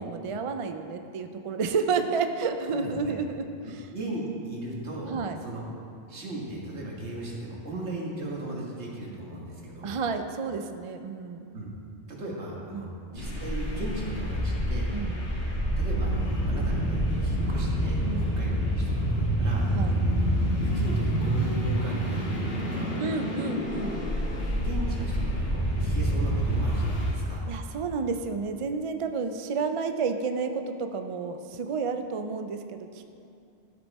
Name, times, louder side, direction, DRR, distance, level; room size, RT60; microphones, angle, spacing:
voice 1, 0.0-3.9 5.1-5.4 9.8-11.5 12.7-12.9 14.9-15.1 18.0-18.3 19.7-19.9 23.0-24.1 27.5-33.1, right 5 dB, 50° right, 7 dB, 0.4 m, -31 dB
voice 2, 2.8-3.2 3.9-5.7 6.1-10.0 11.5-11.7 12.1-14.9 15.8-19.7 20.6-23.0 24.6-27.5, right 1 dB, 75° right, -3 dB, 1.9 m, -37 dB
sound 1, 13.2-27.1, equal, 55° left, 1.9 m, -27 dB
12.0 x 6.9 x 4.1 m, 2.6 s
omnidirectional pair, 1.2 m